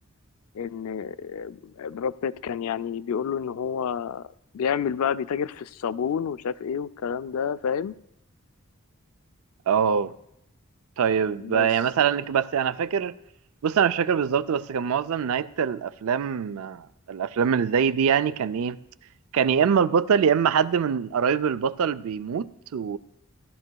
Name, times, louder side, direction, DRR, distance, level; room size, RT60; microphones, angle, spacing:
voice 1, 0.5-7.9 11.4-11.7, left 7 dB, 75° left, 0.3 m, -29 dB
voice 2, 9.7-10.1 11.0-13.1 13.6-18.8 19.3-23.0, right 7 dB, 75° right, 0.4 m, -24 dB
17.5 x 12.0 x 2.3 m
head